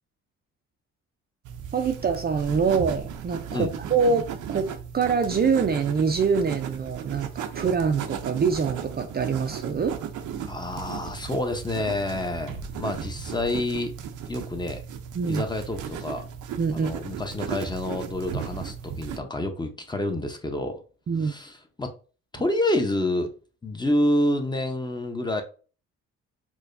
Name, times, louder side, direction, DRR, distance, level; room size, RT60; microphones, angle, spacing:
sound 1, 1.4-19.2, right 7 dB, 80° right, 0.6 m, -36 dB
voice 1, 1.7-10.0 15.1-15.4 16.6-16.9 21.1-21.3, right 5 dB, 35° right, 0.4 m, -25 dB
voice 2, 10.4-13.9 14.3-14.8 15.3-16.3 16.7-20.8 21.2-21.9 22.3-23.3 23.6-25.4, left 1 dB, 15° left, 0.7 m, -28 dB
4.7 x 2.2 x 2.6 m
cardioid pair, 90°, 30 cm